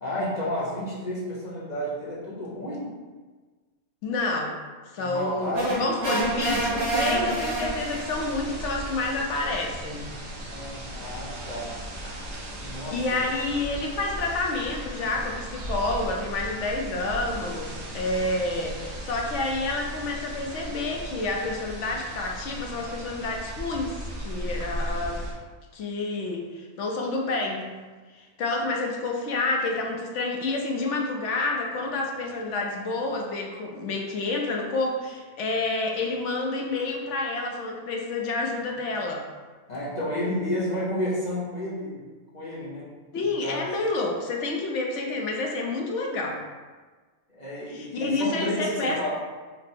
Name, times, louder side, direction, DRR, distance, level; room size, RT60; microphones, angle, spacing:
voice 1, 0.0-2.9 5.0-6.2 10.5-11.7 12.6-13.2 39.7-42.0 42.3-42.9 43.4-43.7 47.3-49.1, equal, 40° left, -8 dB, 0.8 m, -31 dB
voice 2, 4.0-4.6 4.9-5.5 5.8-10.1 12.9-25.2 25.7-27.7 28.1-39.2 43.1-46.4 47.7-49.0, left 2 dB, 70° left, 0 dB, 0.9 m, -29 dB
sound 1, 5.5-8.1, right 2 dB, 90° right, 1.6 m, -27 dB
sound 2, 6.2-25.3, right 1 dB, 60° right, 1.1 m, -37 dB
4.4 x 2.0 x 4.2 m, 1.4 s
omnidirectional pair, 1.4 m